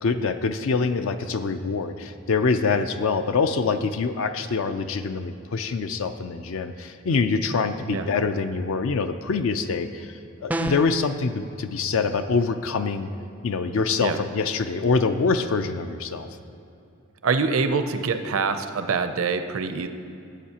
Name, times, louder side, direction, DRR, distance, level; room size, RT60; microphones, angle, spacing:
voice 1, 0.0-10.1 10.4-13.1 13.4-16.3, left 4 dB, 65° left, 9 dB, 0.4 m, -25 dB
sound 1, 10.5-11.0, right 1 dB, 5° right, 0.3 m, -27 dB
voice 2, 17.2-19.9, right 4 dB, 70° right, 8 dB, 0.6 m, -25 dB
15.0 x 8.4 x 2.9 m, 2.7 s
head